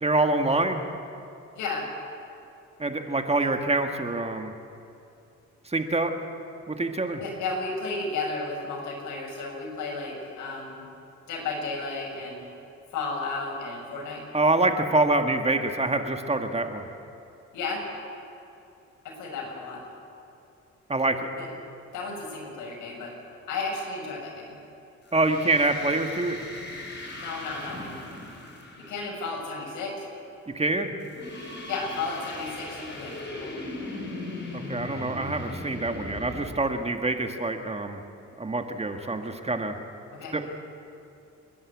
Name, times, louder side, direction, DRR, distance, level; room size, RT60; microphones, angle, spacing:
voice 1, 0.0-0.8 2.8-4.5 5.7-6.1 6.7-7.2 14.3-16.8 20.9-21.2 25.1-26.4 30.5-30.9 34.5-38.0 38.4-39.8 40.3-40.5, right 2 dB, 20° right, 6 dB, 1.7 m, -25 dB
voice 2, 1.6-1.9 7.2-10.8 11.3-12.4 12.9-14.2 17.5-17.8 19.2-19.8 21.4-21.5 21.9-23.1 23.5-24.6 27.1-28.0 28.8-30.0 31.7-33.5 40.2-40.3, left 3 dB, 85° left, -1 dB, 6.5 m, -33 dB
sound 1, 25.1-29.5 31.0-36.5, left 2 dB, 35° left, 5.1 m, -38 dB
29.5 x 11.5 x 8.5 m, 2.8 s
cardioid pair, 90°, 30 cm